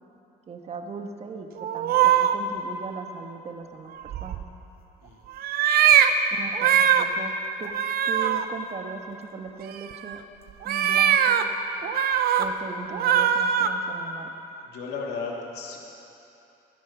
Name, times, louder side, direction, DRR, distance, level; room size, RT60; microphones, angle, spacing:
voice 1, 0.5-4.4 6.3-7.3 7.6-7.7 8.0-10.2 10.6-11.4 12.4-14.3, right 5 dB, 40° right, 5 dB, 1.3 m, -38 dB
sound 1, 1.6-2.3 4.0-4.4 5.4-6.1 6.5-7.0 7.7-8.4 9.9-10.2 10.6-11.4 11.8-12.4 12.9-13.7, right 9 dB, 65° right, 0.8 m, -21 dB
voice 2, 12.2-12.5 14.6-15.8, left 4 dB, 75° left, -1 dB, 2.6 m, -35 dB
17.5 x 13.0 x 6.0 m, 2.9 s
cardioid pair, 110°, 17 cm